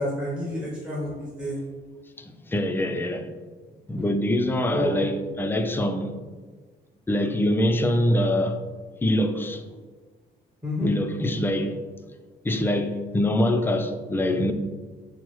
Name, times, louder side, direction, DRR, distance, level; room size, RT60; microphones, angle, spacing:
voice 1, 0.0-1.6 4.7-5.0 10.6-10.9, equal, 5° right, 0.9 m, -29 dB
voice 2, 2.2-3.3 3.9-6.1 7.1-8.6 9.0-9.6 10.8-11.8 12.4-14.5, left 1 dB, 10° left, 0.3 m, -24 dB
5.9 x 2.0 x 3.0 m
cardioid pair, 90°, 20 cm